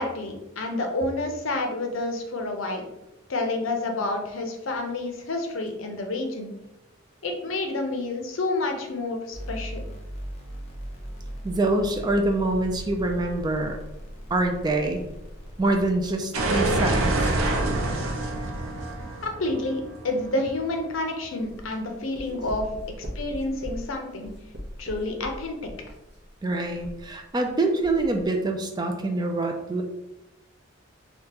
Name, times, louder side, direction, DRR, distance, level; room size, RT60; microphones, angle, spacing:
voice 1, 0.0-2.8 3.3-6.5 7.2-9.8 19.2-22.7 23.2-24.3 24.8-25.7, left 2 dB, 75° left, 3 dB, 0.6 m, -29 dB
sound 1, 9.3-16.2, equal, 30° left, 0.7 m, -39 dB
voice 2, 11.4-13.8 14.3-15.0 15.6-17.1 22.3-22.4 26.4-29.8, right 2 dB, 20° right, 4 dB, 0.3 m, -25 dB
sound 2, 16.3-21.1, right 2 dB, 90° right, 0.6 m, -26 dB
sound 3, 21.4-27.5 27.8-28.2, equal, 55° right, 0.7 m, -40 dB
3.5 x 2.9 x 2.9 m, 0.91 s
head